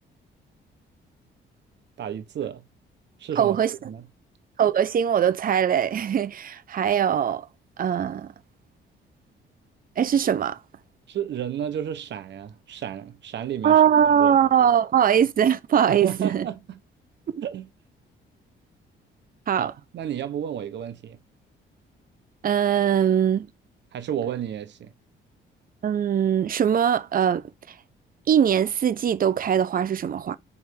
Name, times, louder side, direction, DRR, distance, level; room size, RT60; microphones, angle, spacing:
voice 1, 2.0-2.6 3.2-3.6 3.8-4.0 11.1-13.7 14.2-14.4 15.9-16.8 17.4-17.7 19.6-21.2 23.9-24.9, right 9 dB, 65° right, 1.1 m, -32 dB
voice 2, 3.4-3.7 4.6-7.5 7.8-8.3 10.0-10.6 13.6-16.5 17.3-17.4 19.5-19.7 22.4-23.5 25.8-27.5 28.3-30.4, right 9 dB, 45° right, 0.7 m, -21 dB
7.1 x 3.4 x 4.8 m
cardioid pair, 90°, 20 cm